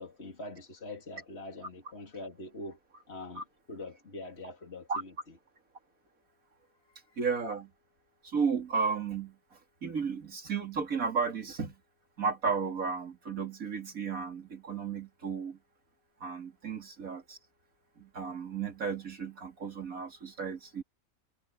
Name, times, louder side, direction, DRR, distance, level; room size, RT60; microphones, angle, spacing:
voice 1, 0.0-2.8 3.1-5.4 6.9-7.2, left 2 dB, 50° left, 2.7 m, -44 dB
voice 2, 7.2-7.7 8.2-9.4 9.8-11.7 12.2-15.6 16.2-17.4 18.0-20.8, right 5 dB, 80° right, 3.2 m, -33 dB
omnidirectional pair, 1.4 m